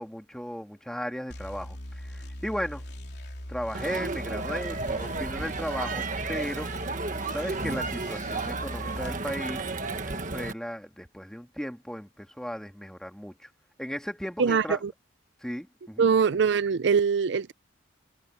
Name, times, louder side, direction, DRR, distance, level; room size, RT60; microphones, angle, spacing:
voice 1, 0.0-2.8 3.5-6.7 7.3-13.5 13.8-14.8 15.4-16.1, equal, 5° left, 2.2 m, -36 dB
sound 1, 1.3-9.2, left 1 dB, 60° left, 3.6 m, -40 dB
Crowd, 3.7-10.5, right 3 dB, 40° right, 1.5 m, -33 dB
voice 2, 14.4-14.9 16.0-17.5, right 6 dB, 60° right, 0.4 m, -23 dB
head